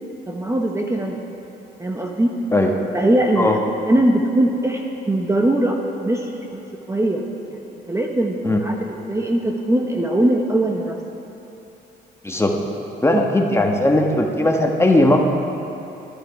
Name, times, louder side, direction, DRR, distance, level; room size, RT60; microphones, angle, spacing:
voice 1, 0.3-1.2 1.8-2.3 2.9-3.5 3.8-6.3 6.9-7.2 7.5-11.0 13.1-13.3, right 1 dB, 15° right, 1 dB, 1.0 m, -21 dB
voice 2, 12.2-12.6 13.0-15.2, left 1 dB, 15° left, 1 dB, 1.3 m, -17 dB
12.0 x 10.5 x 5.8 m, 3.0 s
cardioid pair, 90°, 20 cm